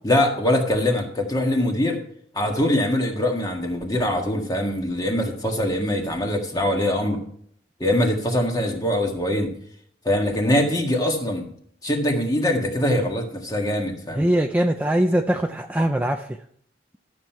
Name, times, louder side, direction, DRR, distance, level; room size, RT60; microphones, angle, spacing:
voice 1, 0.0-2.0 2.3-7.2 7.8-9.5 10.0-11.5 11.8-14.3, left 1 dB, 20° left, 2 dB, 1.7 m, -23 dB
voice 2, 14.2-16.3, right 1 dB, 10° right, 4 dB, 0.4 m, -21 dB
12.5 x 7.4 x 4.5 m, 0.64 s
head